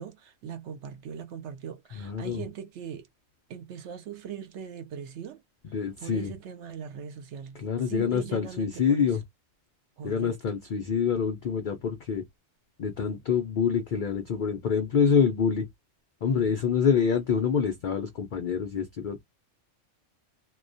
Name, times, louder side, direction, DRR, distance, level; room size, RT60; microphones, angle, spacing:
voice 1, 0.0-3.1 3.5-5.4 6.0-7.6 7.9-9.2 10.0-10.3 16.4-16.5, right 8 dB, 65° right, 0.8 m, -40 dB
voice 2, 1.9-2.4 5.7-6.3 7.5-9.2 10.0-12.2 12.8-15.7 16.2-19.2, left 6 dB, 85° left, 0.4 m, -26 dB
2.3 x 2.2 x 2.5 m
omnidirectional pair, 1.4 m